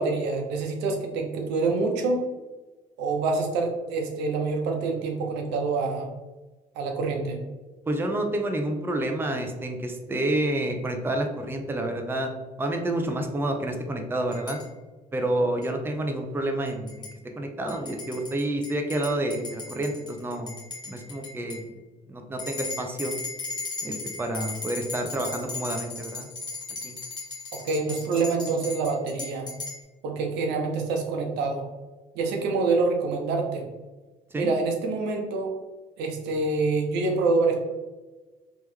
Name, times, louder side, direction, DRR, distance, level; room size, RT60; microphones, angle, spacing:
voice 1, 0.0-2.2 3.0-6.1 6.8-7.4 27.6-29.5 30.0-31.6 32.1-33.7 34.3-35.5 36.0-37.5, right 3 dB, 90° right, 2 dB, 0.8 m, -26 dB
voice 2, 7.9-12.3 12.6-14.6 15.1-17.1 17.4-20.5 20.9-21.7 22.1-23.2 23.8-26.3 26.8-27.0 34.3-34.5, right 1 dB, 15° right, 3 dB, 0.5 m, -29 dB
sound 1, 14.3-14.7 15.6-15.7 16.7-17.1 17.7-21.7 22.4-29.8, left 4 dB, 25° left, 1.5 m, -37 dB
3.5 x 3.1 x 3.3 m, 1.2 s
cardioid pair, 110°, 17 cm